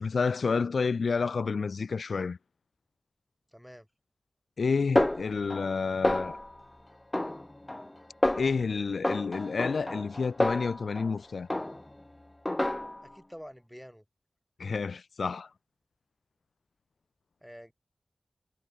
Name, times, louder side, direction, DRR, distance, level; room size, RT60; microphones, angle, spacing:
voice 1, 0.0-2.4 4.6-6.4 8.4-11.5 14.6-15.5, left 5 dB, 90° left, 0.4 m, -29 dB
voice 2, 3.5-3.9 13.0-14.0 17.4-17.7, equal, ahead, 5.9 m, -47 dB
Snare drum, 5.0-5.8 6.0-6.6 7.1-7.9 8.2-8.6 9.0-11.1 11.5-12.0 12.5-13.1, left 1 dB, 20° left, 0.7 m, -29 dB
wide cardioid pair, 80°, 0 cm